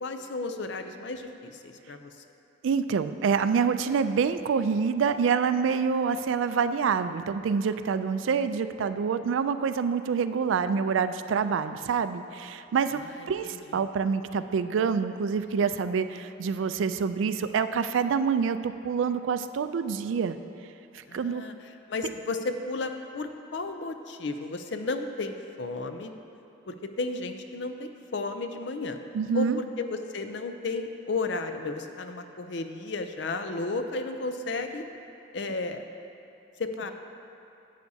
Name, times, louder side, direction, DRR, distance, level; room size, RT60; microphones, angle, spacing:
voice 1, 0.0-2.1 12.9-13.8 21.1-26.1 26.7-29.0 29.3-34.8 35.3-35.8 36.6-36.9, left 3 dB, 65° left, 7 dB, 0.5 m, -33 dB
voice 2, 2.6-13.0 13.3-20.4 21.1-21.4 29.1-29.6, right 6 dB, 80° right, 11 dB, 0.3 m, -26 dB
11.5 x 8.3 x 2.7 m, 3.0 s
head